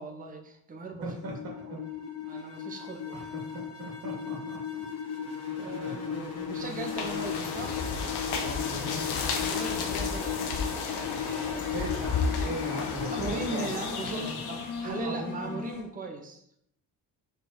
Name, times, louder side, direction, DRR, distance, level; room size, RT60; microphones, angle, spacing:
voice 1, 0.0-1.2 1.6-1.9 2.2-3.4 5.6-7.8 9.4-11.7 13.1-16.6, right 3 dB, 20° right, 3 dB, 0.8 m, -39 dB
sound 1, 1.0-15.8, left 7 dB, 40° left, 1.4 m, -36 dB
voice 2, 1.0-1.8 2.2-2.6 3.1-4.6 5.8-6.0 8.3-9.1 11.7-13.7 14.1-14.3 14.8-15.6, right 2 dB, 60° right, -2 dB, 2.2 m, -39 dB
Cyclist in forest, 6.6-15.0, left 5 dB, 70° left, 1.1 m, -33 dB
4.9 x 4.4 x 5.1 m, 0.72 s
cardioid pair, 155°, 40 cm